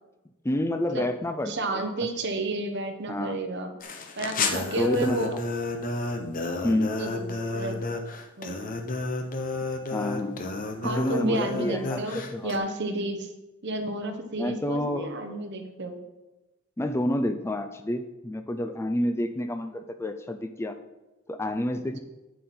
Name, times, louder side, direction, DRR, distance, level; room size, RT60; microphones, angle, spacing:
voice 1, 0.4-1.8 3.1-3.4 4.8-5.4 6.6-7.0 9.9-10.4 10.8-12.6 14.4-15.1 16.8-20.8 21.3-22.0, left 1 dB, 10° left, 8 dB, 0.4 m, -29 dB
voice 2, 1.5-3.7 4.2-5.4 7.0-7.8 8.4-8.6 10.8-13.3 13.6-16.0, right 2 dB, 55° right, 6 dB, 1.0 m, -31 dB
sound 1, 3.8-12.6, left 3 dB, 40° left, 0.8 m, -31 dB
8.4 x 7.5 x 4.3 m, 1.1 s
head